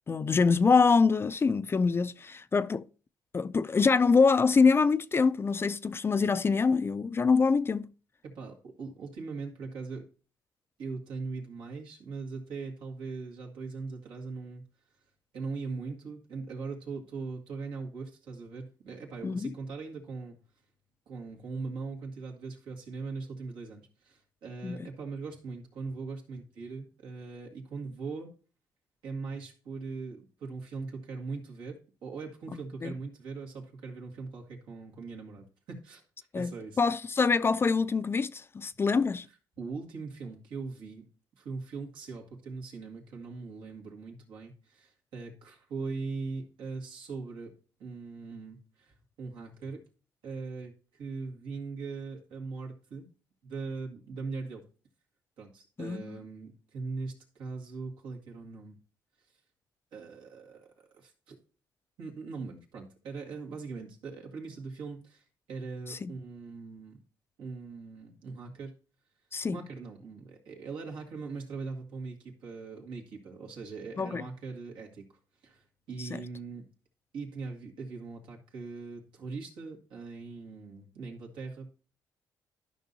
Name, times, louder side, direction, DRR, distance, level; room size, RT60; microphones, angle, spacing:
voice 1, 0.1-2.8 3.3-7.9 19.2-19.5 24.6-24.9 32.8-32.9 36.3-39.3 55.8-56.2 65.9-66.1 69.3-69.6 74.0-74.2 76.0-76.2, left 4 dB, 30° left, 0.4 m, -25 dB
voice 2, 8.2-10.1 10.8-14.6 15.3-20.4 21.1-28.3 29.0-36.0 36.4-36.8 39.6-49.8 50.2-53.1 53.4-54.7 55.4-58.8 59.9-61.4 62.0-67.0 67.4-68.7 69.5-75.1 75.4-76.7 77.1-81.7, right 4 dB, 80° right, 2.0 m, -40 dB
12.0 x 5.5 x 2.7 m
cardioid pair, 85°, 8 cm